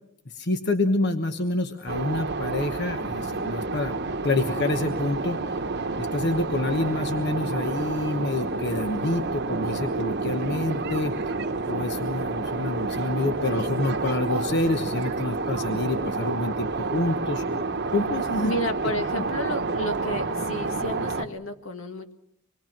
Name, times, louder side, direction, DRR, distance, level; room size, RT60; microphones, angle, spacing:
voice 1, 0.3-4.0 4.2-5.6 6.0-11.1 11.7-17.4 17.9-18.5, left 2 dB, 55° left, 7 dB, 1.2 m, -27 dB
sound 1, 1.9-21.2, right 3 dB, 55° right, 1.1 m, -29 dB
voice 2, 18.4-22.1, left 1 dB, 80° left, 6 dB, 1.9 m, -31 dB
26.0 x 21.5 x 6.0 m, 0.73 s
head